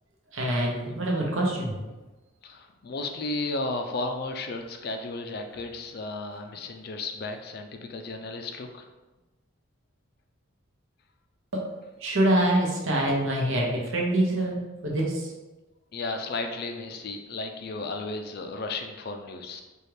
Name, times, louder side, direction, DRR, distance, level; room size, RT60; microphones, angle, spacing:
voice 1, 0.3-1.8 11.5-11.6 12.0-15.3, right 1 dB, 70° right, -2 dB, 0.9 m, -25 dB
voice 2, 2.4-8.9 15.9-19.6, left 2 dB, 50° left, 5 dB, 0.3 m, -34 dB
4.2 x 2.3 x 3.3 m, 1.1 s
head